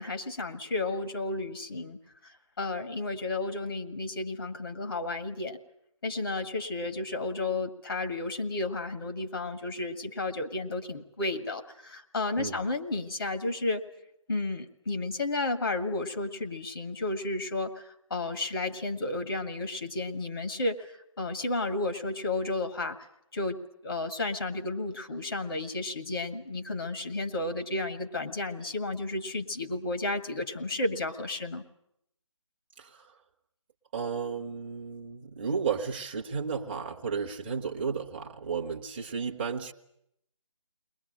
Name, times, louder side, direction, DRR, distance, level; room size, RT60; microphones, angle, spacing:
voice 1, 0.0-5.6 6.0-13.8 14.3-23.0 23.3-31.6, left 2 dB, 45° left, 6 dB, 1.8 m, -32 dB
voice 2, 32.8-33.2 33.9-39.7, right 6 dB, 20° right, 0 dB, 1.1 m, -33 dB
21.5 x 20.0 x 8.9 m, 0.77 s
figure-of-eight pair, 155°, 17 cm